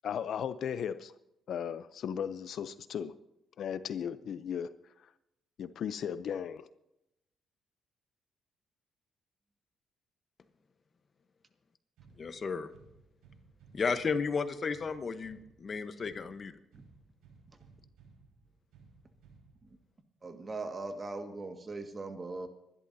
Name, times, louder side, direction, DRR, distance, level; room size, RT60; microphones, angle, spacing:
voice 1, 0.0-1.1 1.5-3.1 3.6-4.7 5.6-6.7, left 8 dB, 65° left, 0.6 m, -36 dB
sound 1, 12.0-20.0, right 4 dB, 90° right, 5.2 m, -60 dB
voice 2, 12.2-12.7 13.7-16.5, left 5 dB, 40° left, 1.0 m, -33 dB
voice 3, 20.2-22.5, right 3 dB, 30° right, 1.8 m, -40 dB
25.5 x 11.5 x 2.8 m
cardioid pair, 90°, 0 cm